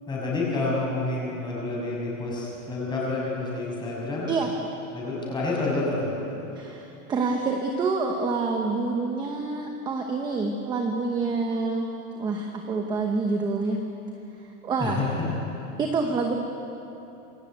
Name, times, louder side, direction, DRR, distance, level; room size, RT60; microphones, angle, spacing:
voice 1, 0.1-4.3 4.9-6.2 14.8-15.3, left 3 dB, 10° left, -4 dB, 6.5 m, -28 dB
voice 2, 4.3-4.6 6.6-11.9 12.2-13.8 14.3-15.0 15.8-16.3, right 4 dB, 10° right, 3 dB, 0.9 m, -27 dB
27.0 x 22.0 x 9.3 m, 3.0 s
supercardioid pair, 175°, 44 cm